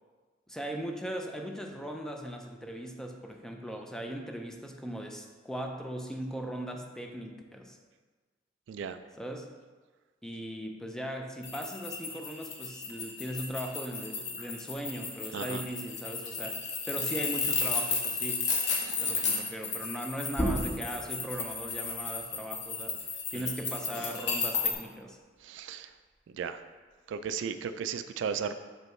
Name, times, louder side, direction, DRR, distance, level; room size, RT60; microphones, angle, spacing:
voice 1, 0.5-7.8 9.2-9.5 10.2-18.5 18.8-25.2, equal, 5° left, 3 dB, 0.4 m, -39 dB
sound 1, 11.4-24.7, left 5 dB, 65° left, 1.0 m, -33 dB
sound 2, 20.3-25.5 25.9-27.7, right 1 dB, 20° left, 1.6 m, -38 dB
voice 2, 25.4-25.9 26.3-26.6 27.1-28.5, right 7 dB, 70° right, 10 dB, 0.3 m, -35 dB
6.3 x 5.3 x 3.1 m, 1.4 s
head